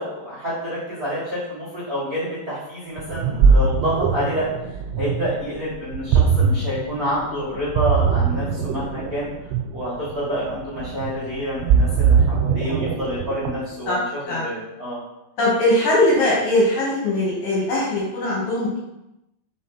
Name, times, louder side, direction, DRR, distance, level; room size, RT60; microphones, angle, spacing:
voice 1, 0.0-4.5 5.0-9.3 9.7-15.0, equal, 45° right, -10 dB, 1.1 m, -28 dB
Ocean, 3.0-13.8, right 6 dB, 85° right, 3.0 m, -21 dB
voice 2, 15.4-18.8, left 1 dB, 55° left, -6 dB, 2.8 m, -20 dB
6.2 x 5.1 x 4.2 m, 0.91 s
omnidirectional pair, 5.7 m